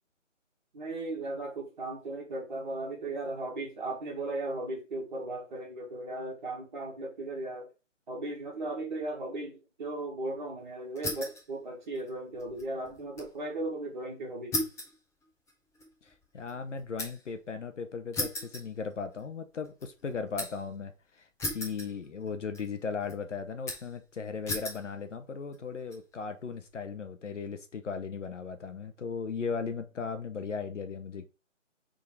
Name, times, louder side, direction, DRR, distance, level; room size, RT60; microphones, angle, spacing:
voice 1, 0.7-7.7 8.1-14.6, right 2 dB, 35° right, 1.8 m, -36 dB
sound 1, 11.0-11.5 11.8-13.4 13.7-13.8 14.5-17.4 18.1-19.3 19.6-20.7 21.4-22.3 22.5-23.1 23.7-24.0 24.5-24.9 25.5-26.0, left 1 dB, 5° left, 1.3 m, -37 dB
voice 2, 16.0-31.3, left 5 dB, 70° left, 0.9 m, -37 dB
5.5 x 3.8 x 4.6 m
hypercardioid pair, 160°, 38 cm